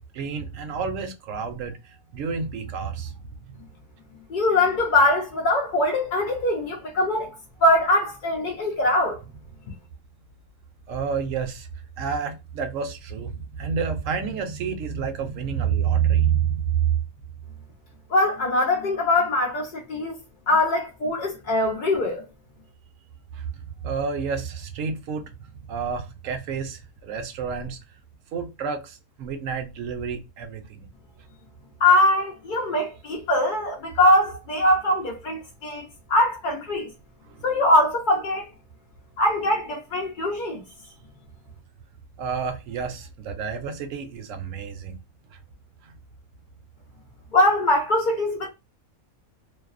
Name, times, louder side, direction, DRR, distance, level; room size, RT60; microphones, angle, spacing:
voice 1, 0.0-3.5 10.9-11.7 12.0-17.0 23.3-25.3 25.7-27.8 28.3-30.9 37.3-37.4 42.2-44.9 45.8-45.9, right 7 dB, 70° right, 0.9 m, -29 dB
voice 2, 4.3-7.3 7.6-9.2 18.1-20.2 20.5-22.2 31.8-36.9 37.4-38.5 39.2-40.6 47.3-48.5, left 1 dB, 80° left, 0.4 m, -22 dB
2.6 x 2.0 x 2.4 m
omnidirectional pair, 1.5 m